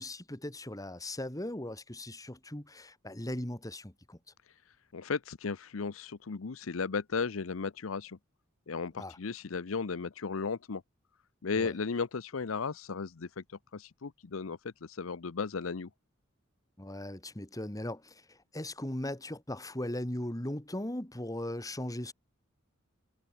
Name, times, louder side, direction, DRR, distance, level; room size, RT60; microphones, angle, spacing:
voice 1, 0.0-4.2 9.0-9.2 11.6-11.7 16.8-22.1, left 1 dB, 15° left, 2.4 m, -38 dB
voice 2, 4.9-8.2 8.7-10.8 11.4-13.4 13.7-15.9, left 5 dB, 90° left, 0.7 m, -35 dB
head